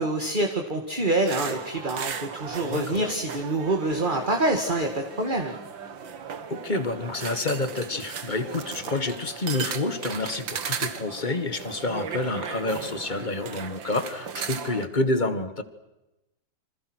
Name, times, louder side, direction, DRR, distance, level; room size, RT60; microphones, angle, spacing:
voice 1, 0.0-5.5, right 2 dB, 25° right, 3 dB, 2.3 m, -26 dB
sound 1, 1.3-14.8, right 6 dB, 80° right, 2.4 m, -36 dB
voice 2, 2.6-3.1 6.5-15.6, left 2 dB, 25° left, 10 dB, 1.8 m, -28 dB
28.5 x 26.5 x 6.3 m, 0.96 s
omnidirectional pair, 2.0 m